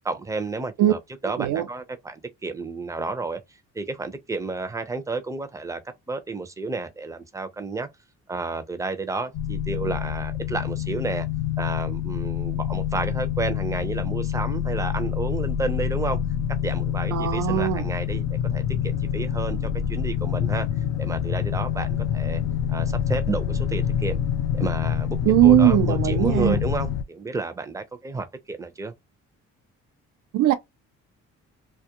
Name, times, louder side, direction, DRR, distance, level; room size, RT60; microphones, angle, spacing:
voice 1, 0.0-5.8 6.1-7.9 8.3-11.3 11.6-16.2 16.6-18.2 18.5-20.7 21.0-22.4 22.7-24.2 24.5-28.9, right 3 dB, 10° right, 0.5 m, -31 dB
sound 1, 9.3-27.0, left 9 dB, 60° left, 0.4 m, -26 dB
voice 2, 17.1-17.9 25.2-26.6 30.3-30.5, right 13 dB, 85° right, 0.5 m, -19 dB
2.3 x 2.1 x 2.8 m
cardioid pair, 90°, 30 cm